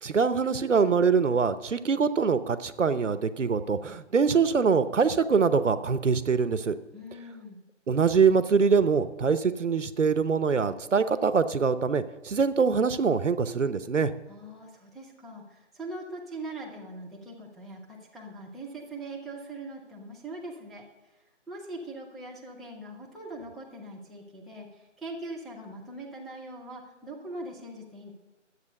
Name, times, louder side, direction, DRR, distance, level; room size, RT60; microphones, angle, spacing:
voice 1, 0.0-6.8 7.9-14.1, right 5 dB, 70° right, 13 dB, 0.9 m, -24 dB
voice 2, 6.9-7.6 14.3-20.8 21.5-28.1, right 2 dB, ahead, -4 dB, 0.5 m, -41 dB
12.5 x 8.2 x 6.5 m, 1.1 s
hypercardioid pair, 175°, 38 cm